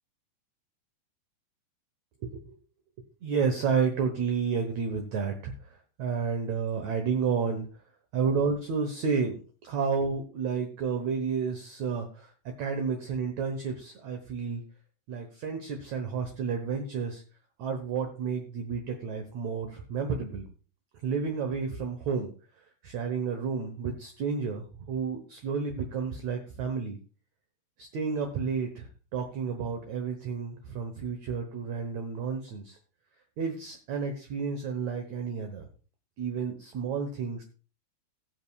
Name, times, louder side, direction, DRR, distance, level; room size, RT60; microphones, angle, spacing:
voice 1, 3.2-7.7 8.1-14.6 15.1-17.2 17.6-20.5 21.0-22.3 22.8-27.0 27.8-28.9 29.1-32.8 33.4-35.7 36.2-37.4, right 5 dB, 65° right, 5 dB, 1.9 m, -31 dB
19.0 x 7.7 x 2.3 m, 0.37 s
omnidirectional pair, 4.6 m